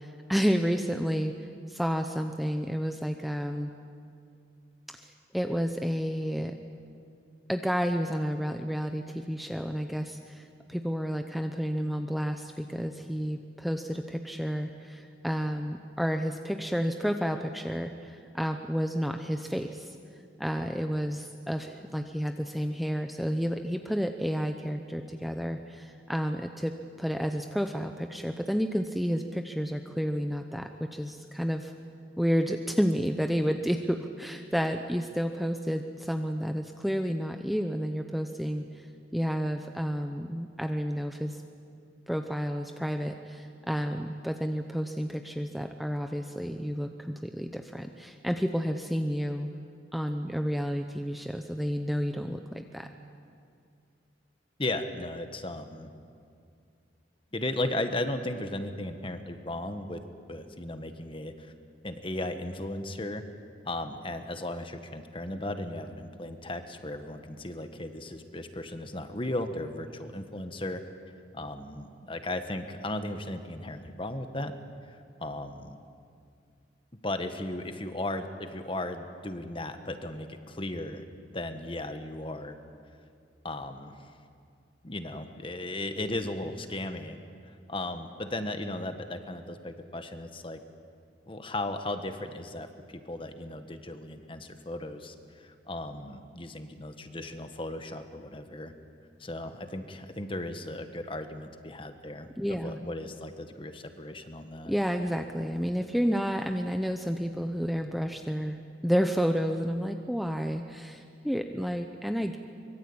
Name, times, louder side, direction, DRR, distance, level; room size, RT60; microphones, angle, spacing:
voice 1, 0.0-3.7 4.9-6.5 7.5-19.9 20.4-26.7 27.0-31.7 32.2-38.9 39.1-41.4 42.1-49.5 49.9-52.9 102.4-102.7 104.6-108.6 108.8-112.4, equal, ahead, 5 dB, 0.8 m, -30 dB
voice 2, 54.6-55.9 57.3-60.0 60.3-61.5 61.8-63.2 63.6-70.8 71.3-74.5 74.9-75.8 77.0-81.0 81.3-82.5 83.4-83.9 84.8-87.2 87.4-90.6 91.3-98.7 99.2-104.7, left 1 dB, 30° left, 8 dB, 1.5 m, -36 dB
24.5 x 22.5 x 8.8 m, 2.3 s
head